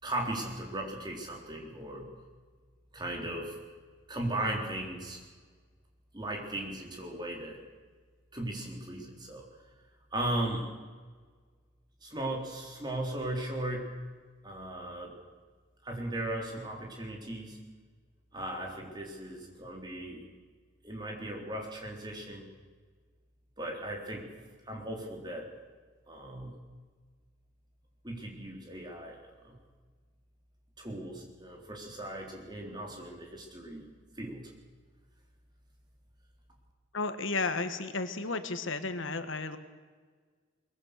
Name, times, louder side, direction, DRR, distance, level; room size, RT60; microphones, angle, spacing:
voice 1, 0.0-2.1 2.9-3.5 4.1-5.2 6.1-7.6 8.3-9.4 10.1-10.7 12.0-13.9 14.4-15.1 15.8-17.6 18.3-20.3 20.8-22.5 23.6-24.3 24.7-25.5 26.1-26.5 28.0-29.2 29.4-29.6 30.8-33.9 34.2-34.4, right 1 dB, 20° right, 0 dB, 3.8 m, -37 dB
voice 2, 36.9-39.6, left 3 dB, 75° left, 10 dB, 1.5 m, -33 dB
22.5 x 21.5 x 6.7 m, 1.5 s
head